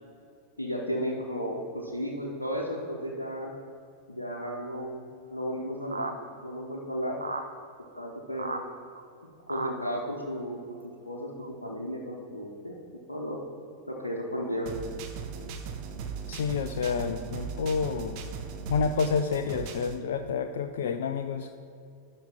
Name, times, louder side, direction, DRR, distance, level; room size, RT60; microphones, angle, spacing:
voice 1, 0.6-3.5 4.1-5.0 5.3-6.1 6.4-7.1 8.0-8.6 9.5-12.7 13.1-13.4 13.9-14.7, equal, 80° left, -3 dB, 1.0 m, -34 dB
sound 1, 5.9-6.1 7.2-7.5 8.0-8.1 8.4-8.6 9.0-9.1 9.5-9.7 10.8-10.9 11.4-11.5, right 3 dB, 80° right, 0.6 m, -34 dB
sound 2, 14.7-20.0, right 6 dB, 45° right, 0.9 m, -38 dB
voice 2, 16.3-18.1 18.7-21.5, left 5 dB, 60° left, 8 dB, 0.4 m, -29 dB
11.5 x 4.3 x 5.6 m, 2.5 s
figure-of-eight pair, 90°, 0 cm